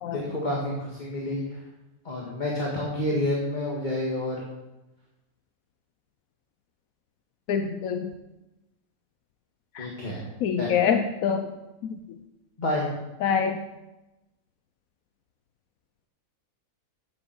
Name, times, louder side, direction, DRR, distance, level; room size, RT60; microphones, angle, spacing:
voice 1, 0.1-1.6 2.0-4.4 9.8-10.3 10.6-10.8 12.6-12.9, left 1 dB, 30° left, -4 dB, 1.9 m, -29 dB
voice 2, 7.5-8.1 9.7-9.9 10.4-11.5 11.8-12.0 13.2-13.6, left 7 dB, 75° left, 7 dB, 1.1 m, -25 dB
9.5 x 7.3 x 6.9 m, 1.0 s
omnidirectional pair, 1.5 m